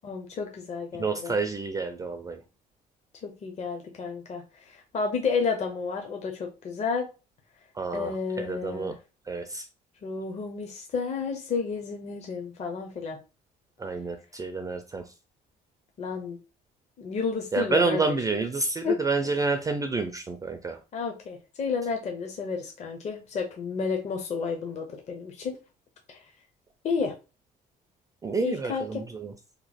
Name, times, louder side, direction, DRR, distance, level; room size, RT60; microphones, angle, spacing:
voice 1, 0.0-1.4 3.2-7.1 7.9-8.9 10.0-13.2 16.0-16.4 17.0-18.3 18.8-19.0 20.9-25.6 26.1-26.3 26.8-27.1 28.4-29.1, left 5 dB, 40° left, 0.7 m, -31 dB
voice 2, 1.0-2.4 7.8-8.1 8.4-8.9 9.3-9.6 13.8-15.0 17.5-20.8 28.2-29.0, right 4 dB, 20° right, 0.4 m, -28 dB
3.0 x 2.2 x 4.1 m
cardioid pair, 110°, 17 cm